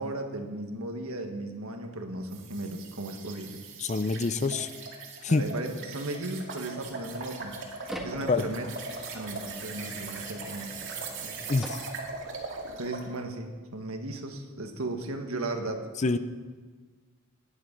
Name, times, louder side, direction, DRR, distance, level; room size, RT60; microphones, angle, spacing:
voice 1, 0.0-3.6 5.3-7.6 8.0-8.7 9.1-11.4 12.8-16.2, right 2 dB, 75° right, 5 dB, 1.6 m, -36 dB
sound 1, 2.3-13.1, right 4 dB, 60° right, 2.2 m, -40 dB
voice 2, 3.8-4.7 5.2-5.5 8.3-8.4 11.5-11.8 16.0-16.2, left 3 dB, 35° left, 12 dB, 0.5 m, -26 dB
sound 2, 6.8-12.8, equal, ahead, 1.4 m, -45 dB
18.5 x 10.0 x 5.3 m, 1.4 s
head